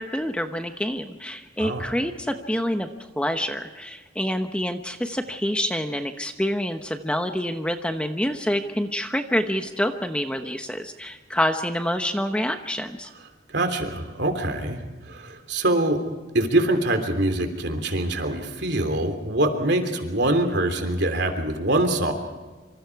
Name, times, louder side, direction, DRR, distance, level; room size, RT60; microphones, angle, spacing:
voice 1, 0.0-2.9 3.2-13.1, equal, 5° left, 6 dB, 1.0 m, -27 dB
voice 2, 13.5-14.8 15.1-16.0 16.3-22.1, right 1 dB, 60° right, 6 dB, 3.2 m, -24 dB
26.5 x 26.5 x 4.8 m, 1.3 s
head